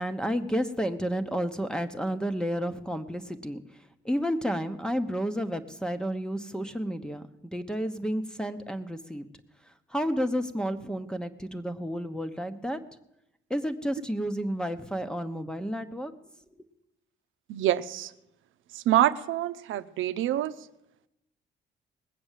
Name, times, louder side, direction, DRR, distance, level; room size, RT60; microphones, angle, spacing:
voice 1, 0.0-3.6 4.0-7.2 7.5-9.3 9.9-12.8 13.5-16.1, equal, 5° left, 9 dB, 1.0 m, -31 dB
voice 2, 17.5-18.1 18.7-20.5, right 13 dB, 80° right, 12 dB, 0.7 m, -26 dB
20.0 x 7.8 x 7.4 m, 0.88 s
cardioid pair, 90°, 20 cm